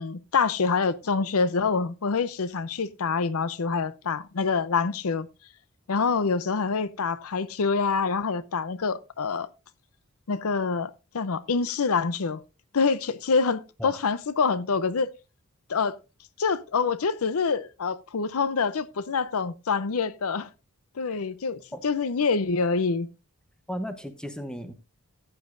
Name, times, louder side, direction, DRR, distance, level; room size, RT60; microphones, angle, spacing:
voice 1, 0.0-5.3 5.9-9.5 10.3-12.4 12.7-15.1 15.7-16.0 16.4-20.5 21.0-23.1, left 5 dB, 75° left, 0.6 m, -26 dB
voice 2, 23.7-24.7, equal, 5° left, 0.8 m, -35 dB
14.5 x 9.2 x 2.6 m
head